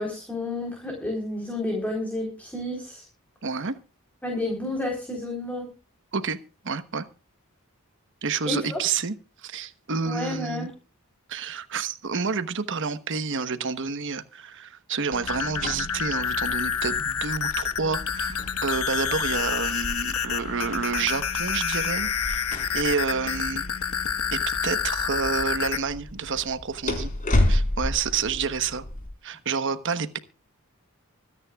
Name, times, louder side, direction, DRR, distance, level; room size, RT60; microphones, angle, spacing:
voice 1, 0.0-3.0 4.2-5.7 8.5-8.8 10.1-10.7, left 1 dB, 5° left, 3.9 m, -30 dB
voice 2, 3.4-3.8 6.1-6.4 6.6-7.1 8.2-9.1 9.4-10.7 11.3-22.5 22.7-23.6 24.3-27.1 27.5-28.8 29.2-30.2, right 5 dB, 60° right, 1.1 m, -29 dB
sound 1, 15.1-25.8, left 7 dB, 80° left, 1.2 m, -28 dB
sound 2, 15.1-29.1, left 1 dB, 40° left, 4.2 m, -32 dB
25.0 x 9.8 x 2.4 m
head